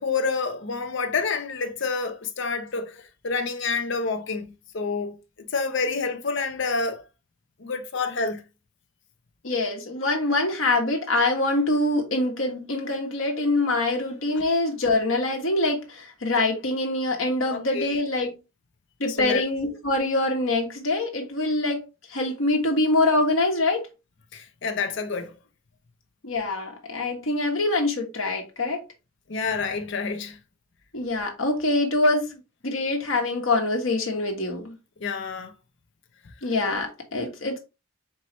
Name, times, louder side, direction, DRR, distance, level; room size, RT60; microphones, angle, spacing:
voice 1, 0.0-7.1 7.6-8.4 17.5-18.0 19.1-19.4 24.3-25.3 29.3-30.4 35.0-35.5, left 4 dB, 65° left, 0.6 m, -28 dB
voice 2, 9.4-18.4 19.0-21.8 22.1-23.9 26.2-28.8 30.9-34.8 36.4-37.6, left 2 dB, 85° left, 1.3 m, -24 dB
4.6 x 3.1 x 3.0 m
head